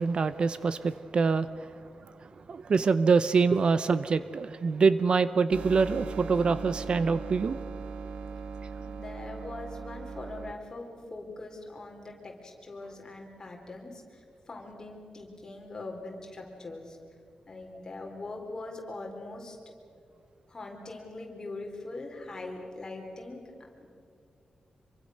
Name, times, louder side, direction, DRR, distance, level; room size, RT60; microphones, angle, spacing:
voice 1, 0.0-1.7 2.0-7.6, right 5 dB, 45° right, 14 dB, 0.6 m, -25 dB
sound 1, 5.5-10.5, right 5 dB, 70° right, 1.5 m, -39 dB
voice 2, 8.8-17.0 17.5-19.6 20.5-23.9, left 2 dB, 25° left, 1 dB, 4.2 m, -42 dB
26.5 x 24.0 x 6.6 m, 2.5 s
wide cardioid pair, 170°, 2 cm